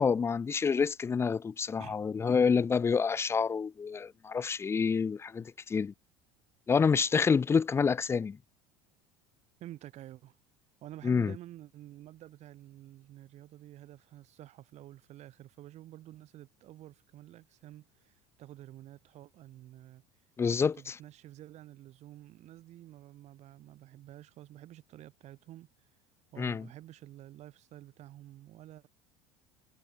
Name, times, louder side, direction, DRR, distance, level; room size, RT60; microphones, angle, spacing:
voice 1, 0.0-5.9 6.7-8.4 11.0-11.3 20.4-20.9 26.4-26.7, left 5 dB, 20° left, 0.4 m, -28 dB
voice 2, 9.6-10.4 10.8-20.0 20.5-25.7 26.3-28.9, right 14 dB, 55° right, 7.2 m, -50 dB
hypercardioid pair, 85°, 14 cm